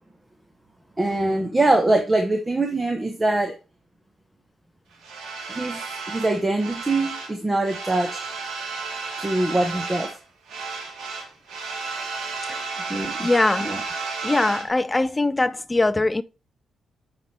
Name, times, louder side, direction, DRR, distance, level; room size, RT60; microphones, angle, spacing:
voice 1, 1.0-3.6 5.5-8.3 9.2-10.1 12.9-13.3 13.6-13.8, right 2 dB, 15° right, 1.1 m, -23 dB
sound 1, 5.0-7.4 7.6-10.2 10.5-14.7, right 4 dB, 85° right, 2.2 m, -32 dB
voice 2, 13.2-13.8 14.2-16.2, left 2 dB, 15° left, 0.5 m, -22 dB
10.0 x 4.4 x 3.3 m
cardioid pair, 120°, 0 cm